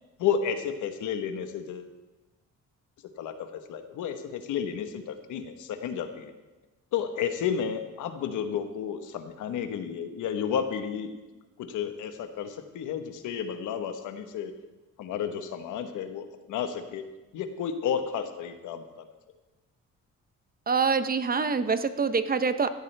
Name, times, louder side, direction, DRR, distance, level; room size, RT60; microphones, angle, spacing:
voice 1, 0.2-1.9 3.2-6.3 6.9-11.1 11.6-14.5 15.0-17.0 17.3-19.1, left 8 dB, 85° left, 7 dB, 1.3 m, -32 dB
voice 2, 20.7-22.7, right 5 dB, 30° right, 11 dB, 0.8 m, -25 dB
16.0 x 13.0 x 3.4 m, 1.1 s
cardioid pair, 90°, 30 cm